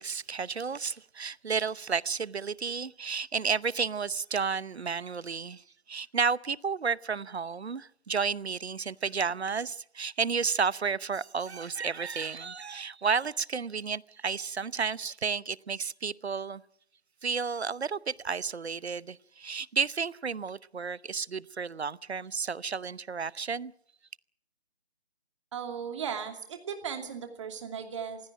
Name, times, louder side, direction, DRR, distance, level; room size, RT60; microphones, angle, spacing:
voice 1, 0.0-16.6 17.2-23.7, right 5 dB, 85° right, 0.8 m, -32 dB
voice 2, 25.5-28.2, right 7 dB, 30° right, 2.6 m, -36 dB
23.0 x 16.0 x 9.0 m
figure-of-eight pair, 160°, 31 cm